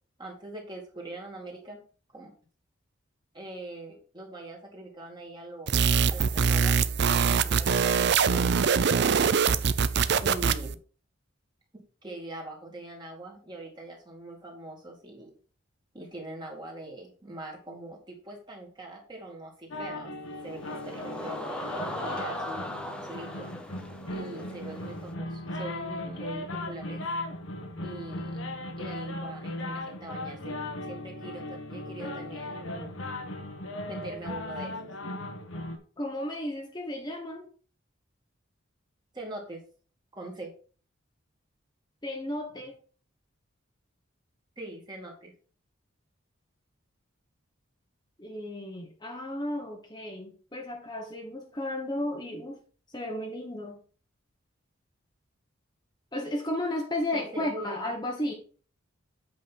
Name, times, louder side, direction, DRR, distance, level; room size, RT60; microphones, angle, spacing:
voice 1, 0.2-1.8 2.1-2.3 3.3-5.8 6.1-9.0 10.2-10.8 11.7-15.3 15.9-20.1 20.4-21.4 22.0-23.5 24.1-27.0 27.8-28.4 28.8-30.6 30.8-33.0 33.9-34.9 39.1-39.6 40.1-40.5 44.6-45.3 57.1-57.8, right 2 dB, 20° right, -1 dB, 2.4 m, -42 dB
sound 1, 5.7-10.7, right 6 dB, 55° right, 0.5 m, -23 dB
sound 2, 19.7-35.8, left 1 dB, 80° left, 1.5 m, -37 dB
sound 3, 20.3-25.1, left 1 dB, 5° left, 0.8 m, -39 dB
voice 2, 36.0-37.5 42.0-42.8 48.2-52.6 52.9-53.8 56.1-58.3, left 1 dB, 20° left, 1 dB, 1.3 m, -34 dB
8.5 x 5.4 x 4.2 m, 0.39 s
head